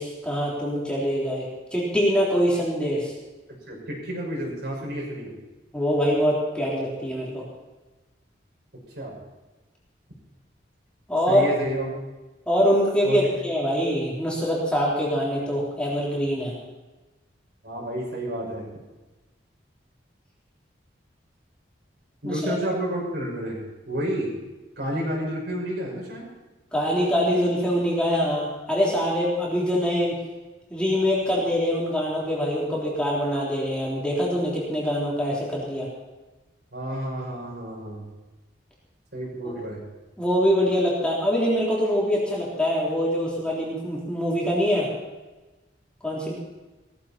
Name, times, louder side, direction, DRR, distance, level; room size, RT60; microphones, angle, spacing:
voice 1, 0.0-3.1 5.7-7.4 11.1-11.5 12.5-16.5 22.2-22.6 26.7-30.2 30.7-35.9 40.2-44.9 46.0-46.3, equal, 5° left, -5 dB, 3.5 m, -24 dB
voice 2, 3.7-5.3 8.9-9.2 11.3-12.1 13.0-13.3 17.6-18.7 22.2-24.3 24.8-26.3 36.7-38.1 39.1-39.8, right 1 dB, 60° right, -3 dB, 6.0 m, -30 dB
18.0 x 14.5 x 4.4 m, 1.1 s
head